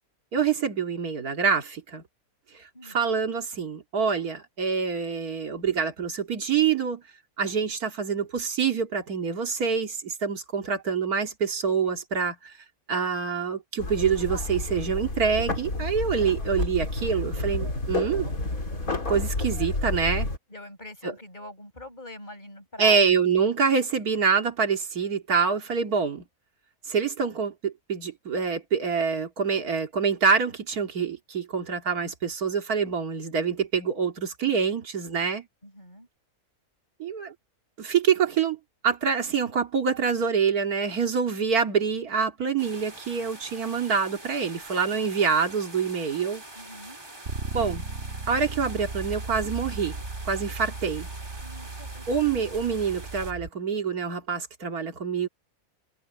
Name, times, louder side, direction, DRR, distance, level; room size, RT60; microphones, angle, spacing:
voice 1, 0.3-2.0 2.6-7.0 7.4-12.5 12.9-18.3 19.1-20.3 21.0-21.1 22.8-26.2 26.9-35.5 37.0-37.3 37.8-46.4 47.5-47.8 48.3-50.0 50.3-51.1 52.1-55.3, right 6 dB, 80° right, 2.6 m, -26 dB
sound 1, 13.8-20.4, left 2 dB, 70° left, 4.3 m, -30 dB
voice 2, 20.5-23.2 35.6-36.1 46.5-47.0 51.4-52.1, left 1 dB, 30° left, 7.7 m, -44 dB
sound 2, 42.6-53.3, right 1 dB, 15° right, 2.3 m, -44 dB
Bass guitar, 47.3-53.5, right 3 dB, 50° right, 1.9 m, -37 dB
omnidirectional pair, 1.6 m